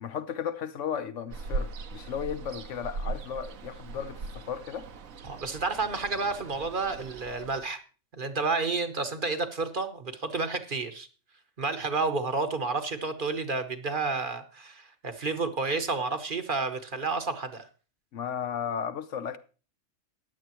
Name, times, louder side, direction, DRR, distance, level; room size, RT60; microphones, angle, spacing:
voice 1, 0.0-4.9 18.1-19.4, left 8 dB, 65° left, 1.0 m, -35 dB
Ocean, 1.3-7.6, right 3 dB, 80° right, 1.3 m, -39 dB
voice 2, 5.3-7.8 8.1-11.1 11.6-17.7, right 4 dB, 40° right, 1.0 m, -30 dB
15.0 x 10.0 x 3.0 m
omnidirectional pair, 1.4 m